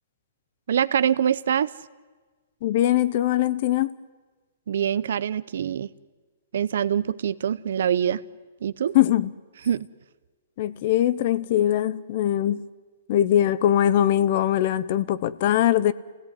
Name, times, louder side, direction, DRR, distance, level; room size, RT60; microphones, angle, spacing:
voice 1, 0.7-1.7 4.7-5.9 6.5-8.2 8.6-9.0 9.7-9.9, right 9 dB, 60° right, 17 dB, 0.7 m, -24 dB
voice 2, 2.6-3.9 8.9-9.3 10.6-12.7 13.1-15.9, left 12 dB, 40° left, 17 dB, 0.7 m, -21 dB
28.5 x 17.5 x 9.7 m, 1.3 s
hypercardioid pair, 170°, 0 cm